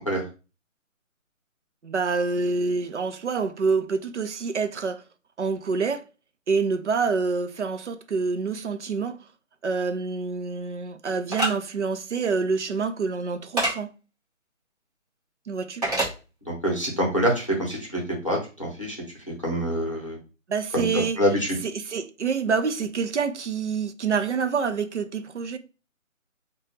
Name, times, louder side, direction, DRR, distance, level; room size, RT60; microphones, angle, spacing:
voice 1, 1.8-5.0 5.4-6.0 6.5-9.2 9.6-13.9 15.5-15.8 20.5-21.2 21.6-25.6, right 5 dB, 60° right, 0.5 m, -27 dB
sound 1, 11.3-11.5 13.6-13.7 15.8-16.1, right 1 dB, 30° right, 1.5 m, -24 dB
voice 2, 16.4-19.0 19.4-20.2 20.7-21.5, equal, 25° left, 0.7 m, -25 dB
3.7 x 2.3 x 3.1 m
figure-of-eight pair, 175°, 40 cm